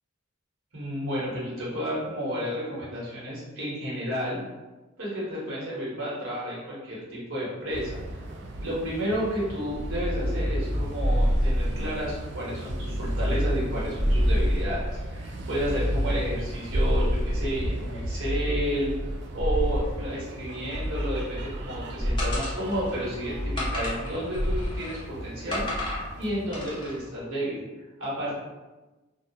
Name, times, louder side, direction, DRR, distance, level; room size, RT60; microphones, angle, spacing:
voice 1, 0.7-4.4 5.0-8.0 8.6-18.9 19.3-27.6 28.0-28.3, equal, 75° right, -7 dB, 1.0 m, -31 dB
sound 1, 7.7-27.2, right 1 dB, 55° right, 0.3 m, -38 dB
sound 2, 9.7-12.2 12.6-15.1 15.5-17.7 18.2-20.1 20.7-21.7 22.0-22.5 23.3-24.1 24.3-24.8, equal, 20° right, 1.2 m, -27 dB
sound 3, 22.2-23.0 23.6-25.0 25.5-26.1 26.5-26.9, left 1 dB, 25° left, 0.6 m, -34 dB
2.3 x 2.1 x 2.7 m, 1.2 s
head